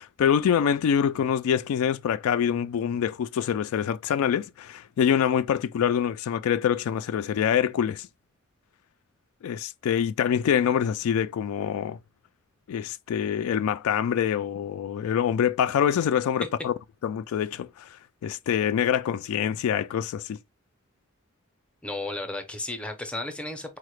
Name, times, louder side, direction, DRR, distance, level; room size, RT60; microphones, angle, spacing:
voice 1, 0.0-8.1 9.4-12.0 12.7-16.7 17.0-17.9 18.2-20.4, left 8 dB, 85° left, 0.3 m, -25 dB
voice 2, 21.8-23.8, left 2 dB, 5° left, 0.5 m, -34 dB
4.7 x 2.1 x 3.0 m
head